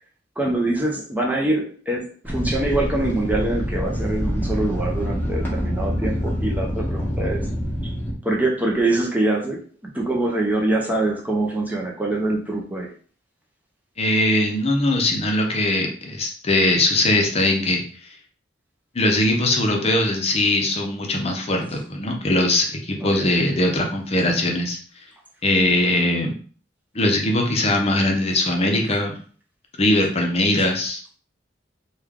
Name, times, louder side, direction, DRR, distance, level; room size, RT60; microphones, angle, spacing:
voice 1, 0.4-7.4 7.8-7.9 8.2-9.7 9.9-12.9 23.0-23.3, right 2 dB, 10° right, -1 dB, 0.5 m, -24 dB
sound 1, 2.2-8.1, equal, 10° left, 1.1 m, -26 dB
voice 2, 14.0-17.8 18.9-24.8 25.4-26.3 26.9-29.2 29.8-31.0, left 1 dB, 35° left, 2 dB, 0.6 m, -21 dB
3.2 x 2.3 x 3.5 m, 0.43 s
head